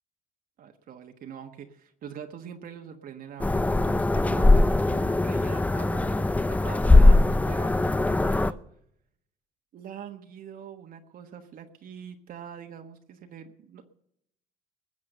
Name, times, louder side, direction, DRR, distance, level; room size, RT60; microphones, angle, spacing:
voice 1, 0.6-8.6 9.7-13.8, right 8 dB, 60° right, 5 dB, 1.3 m, -43 dB
sound 1, 3.4-8.5, left 2 dB, 10° left, 0.5 m, -20 dB
20.0 x 7.5 x 6.6 m, 0.74 s
cardioid pair, 110°, 17 cm